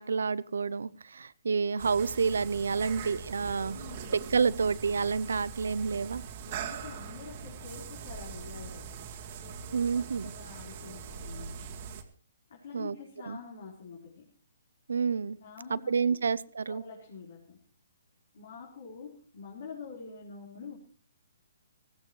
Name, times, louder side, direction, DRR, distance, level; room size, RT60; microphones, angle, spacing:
voice 1, 0.0-3.8 4.3-6.2 9.7-10.3 12.7-13.0 13.3-13.4 14.9-15.4 15.7-16.8, right 5 dB, 80° right, 20 dB, 0.6 m, -29 dB
sound 1, 1.8-12.0, right 7 dB, 40° right, 2.0 m, -42 dB
voice 2, 3.5-4.2 6.5-9.1 9.4-11.8 12.5-14.3 15.3-16.3 16.7-17.6 18.3-20.8, left 5 dB, 65° left, -3 dB, 4.4 m, -47 dB
19.5 x 15.5 x 3.2 m, 0.40 s
hypercardioid pair, 145°, 0 cm